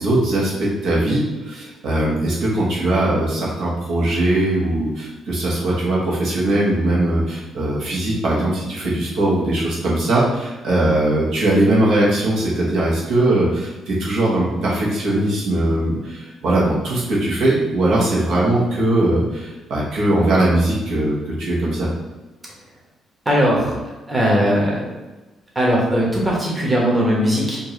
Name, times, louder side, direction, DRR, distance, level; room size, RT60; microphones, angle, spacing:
voice 1, 0.0-21.9, right 1 dB, 75° right, -5 dB, 1.2 m, -20 dB
voice 2, 23.2-23.8 24.1-24.8 25.5-27.6, equal, 15° right, -4 dB, 1.3 m, -18 dB
4.5 x 2.6 x 3.1 m, 1.1 s
cardioid pair, 90°, 0 cm